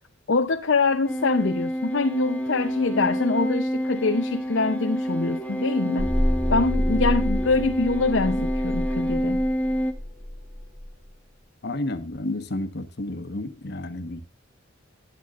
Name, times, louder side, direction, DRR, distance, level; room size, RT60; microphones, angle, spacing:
voice 1, 0.3-6.1 6.5-9.4, left 3 dB, 70° left, 0.7 m, -24 dB
sound 1, 1.1-9.9, equal, 10° left, 1.2 m, -27 dB
sound 2, 6.0-10.9, equal, 15° right, 2.7 m, -28 dB
voice 2, 11.6-14.2, left 1 dB, 55° left, 1.3 m, -31 dB
19.5 x 8.3 x 2.5 m
head